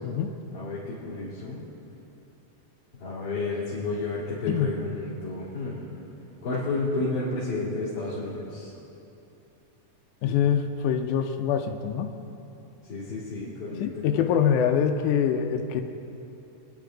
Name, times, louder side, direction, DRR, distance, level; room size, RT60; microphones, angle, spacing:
voice 1, 0.5-1.6 2.9-6.0 6.4-8.7 12.9-14.6, left 2 dB, 45° left, -11 dB, 3.0 m, -31 dB
voice 2, 10.2-12.1 13.8-15.8, left 8 dB, 80° left, 5 dB, 1.8 m, -24 dB
22.0 x 10.0 x 3.9 m, 2.9 s
omnidirectional pair, 4.0 m